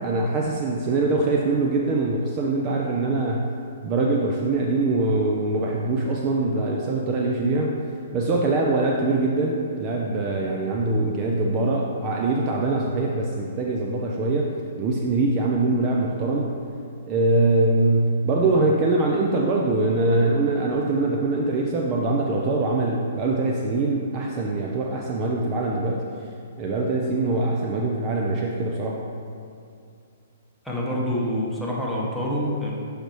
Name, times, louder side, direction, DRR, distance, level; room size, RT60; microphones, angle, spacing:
voice 1, 0.0-3.5 3.8-7.8 8.1-16.6 17.0-26.0 26.6-29.0, right 2 dB, 30° right, -1 dB, 0.5 m, -23 dB
voice 2, 30.6-32.7, equal, ahead, -6 dB, 1.1 m, -26 dB
6.5 x 4.9 x 3.0 m, 2.4 s
figure-of-eight pair, 120°, 0 cm